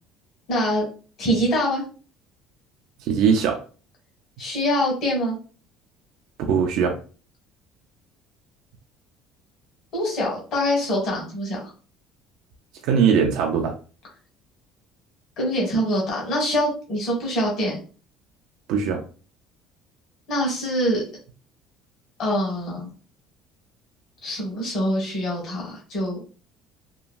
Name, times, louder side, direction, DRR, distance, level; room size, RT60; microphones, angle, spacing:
voice 1, 0.5-0.9 1.2-1.8 4.4-5.4 9.9-11.7 15.4-17.8 20.3-21.0 22.2-22.9 24.2-26.2, equal, 45° left, -2 dB, 1.2 m, -24 dB
voice 2, 3.0-3.6 6.5-7.0 12.8-13.7 18.7-19.0, right 6 dB, 60° right, 2 dB, 0.4 m, -20 dB
2.9 x 2.5 x 2.3 m, 0.38 s
cardioid pair, 170°, 0 cm